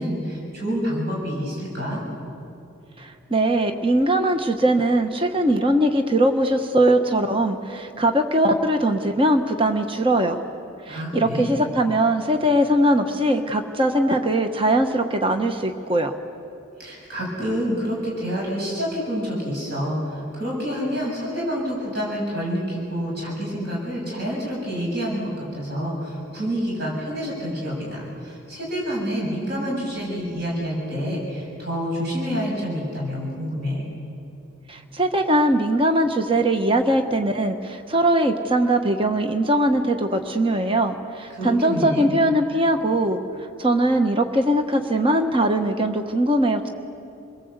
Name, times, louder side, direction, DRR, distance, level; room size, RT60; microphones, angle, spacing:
voice 1, 0.0-2.0 10.9-11.6 16.8-33.9 41.3-42.1, equal, 50° right, -3 dB, 7.0 m, -28 dB
voice 2, 3.0-10.4 10.9-16.1 34.7-43.2 43.6-46.7, right 1 dB, 25° right, 6 dB, 1.2 m, -21 dB
28.5 x 21.5 x 8.1 m, 2.8 s
head